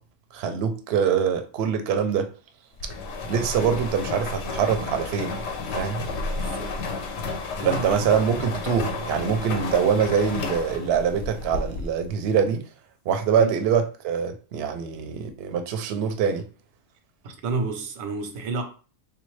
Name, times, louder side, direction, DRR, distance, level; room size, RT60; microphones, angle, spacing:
voice 1, 0.3-2.3 3.3-5.4 5.7-6.0 7.6-12.6 13.1-16.4, right 7 dB, 65° right, 0.7 m, -24 dB
sound 1, 2.8-12.1, left 3 dB, 65° left, 0.8 m, -32 dB
voice 2, 6.4-6.8 7.6-7.9 8.3-8.5 13.4-13.5 17.2-18.6, right 3 dB, 90° right, 1.1 m, -30 dB
3.4 x 2.5 x 3.1 m
omnidirectional pair, 1.4 m